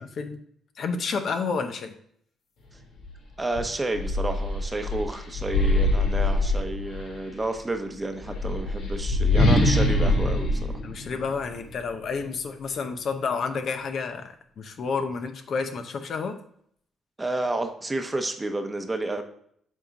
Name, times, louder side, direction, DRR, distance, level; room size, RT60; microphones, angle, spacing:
voice 1, 0.8-1.9 10.8-16.4, left 5 dB, 60° left, 7 dB, 0.7 m, -30 dB
sound 1, 3.0-3.1 3.5-7.2 8.1-11.7, left 2 dB, 75° left, 1.6 m, -24 dB
voice 2, 3.4-10.6 17.2-19.2, right 2 dB, 20° right, 6 dB, 0.8 m, -30 dB
7.5 x 3.7 x 4.0 m, 0.66 s
cardioid pair, 90°, 0 cm